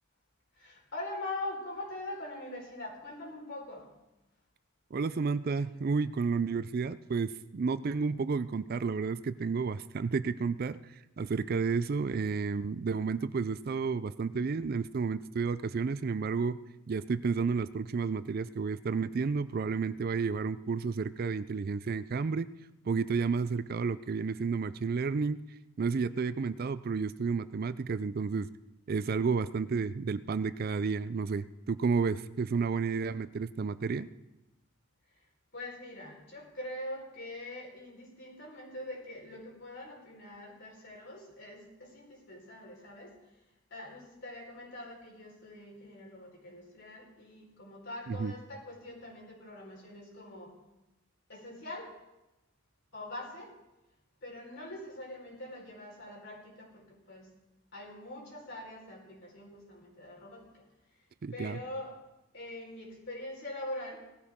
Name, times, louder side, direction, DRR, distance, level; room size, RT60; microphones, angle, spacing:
voice 1, 0.6-3.9 35.1-35.2 35.5-43.2 43.7-50.5 51.3-52.0 52.9-53.5 54.2-57.3 57.7-60.7 60.9-61.0 61.3-62.0 62.3-64.1, left 1 dB, 55° left, -2 dB, 4.4 m, -43 dB
voice 2, 4.9-10.8 11.2-16.6 16.9-22.5 22.9-25.4 25.8-28.5 28.9-34.1 48.1-48.3 61.2-61.6, right 5 dB, 45° right, 14 dB, 0.4 m, -31 dB
18.5 x 13.5 x 3.6 m, 0.97 s
head